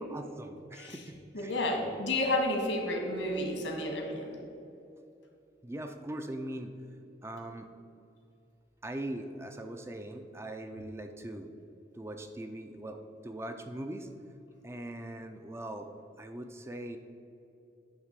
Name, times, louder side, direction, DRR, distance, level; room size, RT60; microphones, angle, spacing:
voice 1, 0.1-1.5 5.6-6.7 7.2-7.7 8.8-11.5 12.0-14.1 14.6-15.9 16.2-17.0, right 1 dB, 15° right, 6 dB, 0.4 m, -41 dB
voice 2, 1.3-4.3, left 1 dB, 85° left, 1 dB, 1.6 m, -31 dB
8.9 x 3.6 x 6.6 m, 2.7 s
head